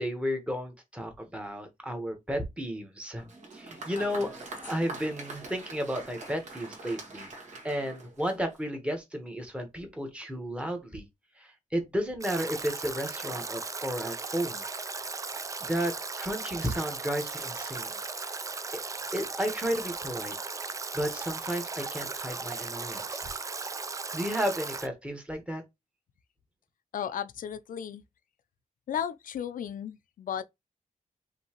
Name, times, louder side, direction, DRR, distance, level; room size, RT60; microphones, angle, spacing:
voice 1, 0.0-3.3 3.5-4.3 4.6-7.3 7.6-11.1 11.4-14.6 15.6-17.9 18.3-18.5 18.7-18.8 19.1-20.3 20.9-23.3 24.1-25.6, equal, 10° right, 1.1 m, -33 dB
Applause, 3.2-8.7, right 2 dB, 60° right, 1.6 m, -44 dB
Stream / Drip / Trickle dribble, 12.2-24.9, right 4 dB, 25° right, 0.4 m, -37 dB
voice 2, 26.9-28.0 28.9-30.4, left 9 dB, 80° left, 0.5 m, -35 dB
5.3 x 2.9 x 2.9 m
wide cardioid pair, 155°, 14 cm